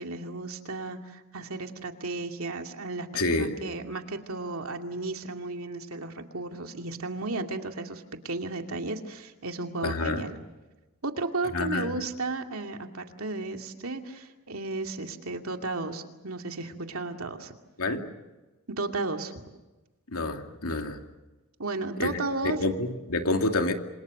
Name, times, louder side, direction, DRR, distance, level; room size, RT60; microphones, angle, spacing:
voice 1, 0.0-10.4 11.0-17.5 18.7-19.3 21.6-22.6, right 3 dB, 75° right, 4 dB, 2.5 m, -34 dB
voice 2, 3.1-3.6 9.8-10.2 11.5-12.0 17.8-18.1 20.1-21.0 22.0-22.1 22.6-23.7, left 2 dB, 80° left, 4 dB, 2.6 m, -28 dB
27.5 x 26.5 x 6.7 m, 1.1 s
head